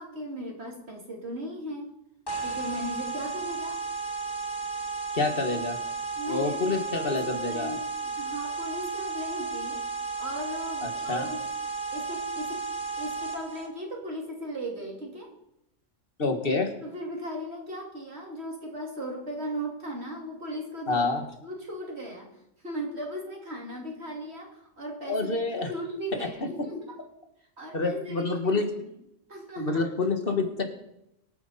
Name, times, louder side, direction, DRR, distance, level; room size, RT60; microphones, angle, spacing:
voice 1, 0.0-1.9 2.4-3.8 6.1-7.8 8.2-9.8 10.2-11.4 11.9-12.7 13.0-15.3 16.8-21.1 21.4-22.3 22.6-27.0 27.6-28.7 29.3-29.8, equal, 55° right, 0 dB, 3.0 m, -37 dB
sound 1, 2.3-13.7, right 4 dB, 20° left, 1.8 m, -33 dB
voice 2, 5.1-5.8 6.3-7.7 10.8-11.3 16.2-16.7 20.9-21.2 25.0-25.7 27.7-28.7 29.6-30.7, left 3 dB, 45° left, 5 dB, 1.9 m, -27 dB
24.0 x 9.2 x 4.2 m, 0.81 s
omnidirectional pair, 1.3 m